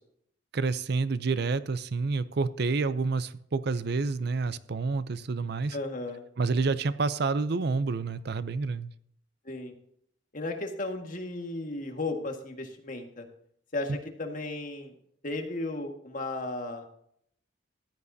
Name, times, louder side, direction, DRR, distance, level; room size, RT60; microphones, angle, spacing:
voice 1, 0.5-5.8 6.4-8.9, right 4 dB, 55° right, 14 dB, 0.5 m, -28 dB
voice 2, 5.7-6.2 9.5-9.7 10.3-13.3 13.7-14.9 15.2-16.8, left 2 dB, 45° left, 3 dB, 1.8 m, -35 dB
14.5 x 10.5 x 2.7 m, 0.69 s
head